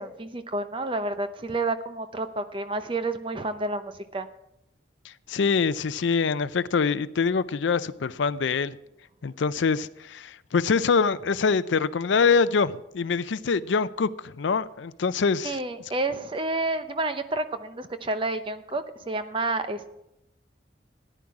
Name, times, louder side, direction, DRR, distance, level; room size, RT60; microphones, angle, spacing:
voice 1, 0.0-4.3 15.4-19.9, right 2 dB, 25° right, 0.7 m, -30 dB
voice 2, 5.0-8.8 9.2-15.6, left 5 dB, 75° left, 0.5 m, -24 dB
14.5 x 10.0 x 4.8 m
head